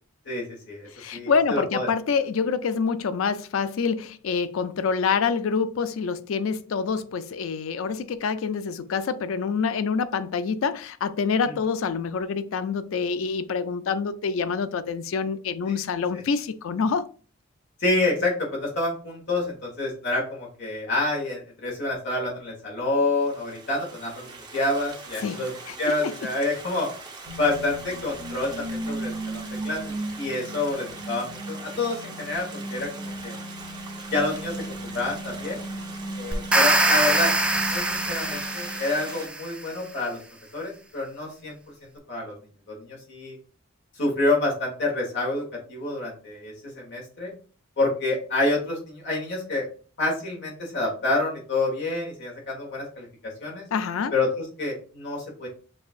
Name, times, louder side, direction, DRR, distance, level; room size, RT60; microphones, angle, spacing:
voice 1, 0.3-1.9 11.4-11.5 17.8-26.9 27.4-33.4 34.1-35.6 36.1-37.3 37.7-40.2 40.5-41.6 42.1-42.3 42.7-43.4 44.0-47.3 47.8-49.7 50.0-53.6 54.1-55.5, left 2 dB, 60° left, 1.2 m, -28 dB
voice 2, 0.9-17.1 25.2-26.1 53.7-54.1, left 5 dB, 75° left, 0.4 m, -26 dB
Stream, 23.0-39.3, right 3 dB, 20° right, 0.7 m, -42 dB
sound 1, 27.2-39.2, right 1 dB, 75° right, 0.6 m, -37 dB
sound 2, 36.3-39.5, right 2 dB, 5° right, 0.3 m, -23 dB
6.4 x 2.5 x 2.4 m
head